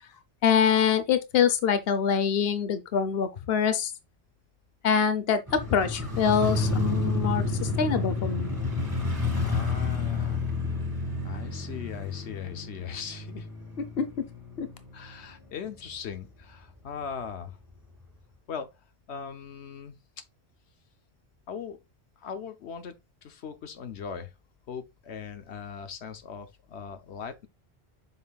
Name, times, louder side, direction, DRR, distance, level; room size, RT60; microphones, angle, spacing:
voice 1, 0.4-3.9 4.8-8.5 14.0-14.2 14.6-14.7, left 7 dB, 65° left, 1.0 m, -25 dB
Motorcycle, 5.5-15.6 15.9-16.0, left 3 dB, 20° right, 1.9 m, -30 dB
voice 2, 9.3-10.4 11.2-13.5 14.9-17.6 18.5-18.8 19.1-20.0 21.5-21.8 22.2-24.3 24.7-27.5, left 7 dB, 85° left, 1.1 m, -39 dB
7.7 x 5.6 x 2.3 m
omnidirectional pair, 1.1 m